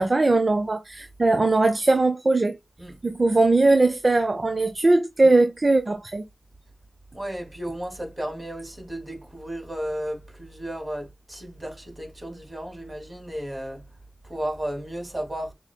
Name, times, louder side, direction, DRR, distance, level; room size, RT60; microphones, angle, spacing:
voice 1, 0.0-2.6 3.0-6.2, right 2 dB, 50° right, 0.7 m, -20 dB
voice 2, 7.1-13.8 14.2-15.5, right 1 dB, 30° right, 2.9 m, -34 dB
7.2 x 3.1 x 2.2 m
cardioid pair, 45°, 0 cm